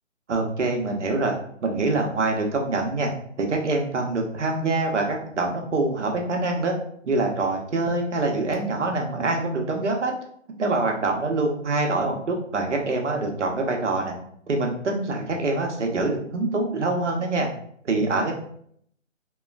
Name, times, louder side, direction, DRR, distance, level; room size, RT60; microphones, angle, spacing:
voice 1, 0.3-1.3 1.6-3.1 3.4-6.7 7.0-10.1 10.6-14.1 14.5-17.5 17.8-18.3, right 2 dB, 65° right, 2 dB, 0.7 m, -25 dB
3.0 x 2.2 x 2.2 m, 0.66 s
figure-of-eight pair, 155°, 39 cm